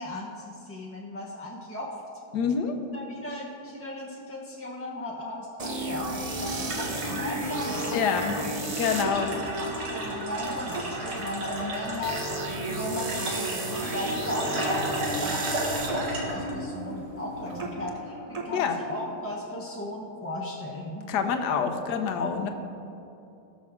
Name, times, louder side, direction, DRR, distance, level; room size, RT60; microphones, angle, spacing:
voice 1, 0.0-1.9 2.9-8.4 8.9-9.3 9.7-12.2 12.7-21.1 22.2-22.5, left 1 dB, 10° left, -3 dB, 0.6 m, -36 dB
voice 2, 2.3-2.8 7.9-8.4 8.8-9.3 18.5-18.8 21.1-22.5, left 6 dB, 75° left, 6 dB, 1.4 m, -26 dB
sound 1, 5.6-19.3, right 1 dB, 30° right, 0.7 m, -34 dB
sound 2, 6.0-17.7, right 1 dB, 85° right, 2.3 m, -35 dB
18.5 x 6.4 x 3.7 m, 2.8 s
omnidirectional pair, 1.8 m